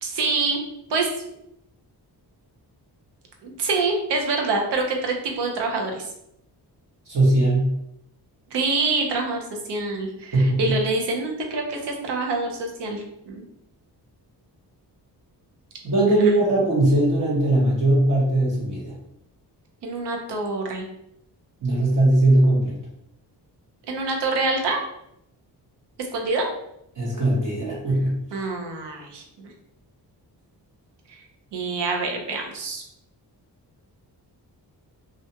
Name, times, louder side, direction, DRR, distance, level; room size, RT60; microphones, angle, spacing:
voice 1, 0.0-0.6 0.9-1.1 3.4-6.0 8.5-13.4 16.2-16.3 19.8-20.8 23.9-24.8 26.1-26.5 28.3-29.5 31.1-31.2 31.5-32.8, right 3 dB, 80° right, 2 dB, 0.7 m, -26 dB
voice 2, 7.1-7.7 10.3-10.7 15.8-18.9 21.6-22.8 27.0-28.4, right 1 dB, 50° right, -5 dB, 1.0 m, -20 dB
2.5 x 2.2 x 2.7 m, 0.79 s
wide cardioid pair, 120°, 41 cm